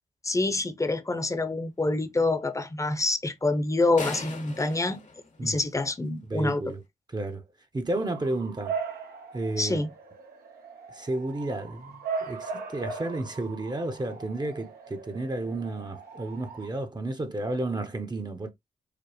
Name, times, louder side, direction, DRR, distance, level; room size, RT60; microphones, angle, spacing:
voice 1, 0.2-5.0 5.4-6.6 9.6-9.9, left 2 dB, 20° left, 0.8 m, -26 dB
sound 1, 4.0-6.1, left 4 dB, 50° left, 1.0 m, -39 dB
voice 2, 6.3-6.8 7.1-7.4 7.7-8.8 9.3-9.8 10.9-18.5, right 2 dB, 25° right, 0.8 m, -32 dB
Bark / Motor vehicle (road) / Siren, 7.9-16.7, right 5 dB, 80° right, 0.9 m, -39 dB
5.0 x 2.0 x 3.0 m
supercardioid pair, 50°, 16 cm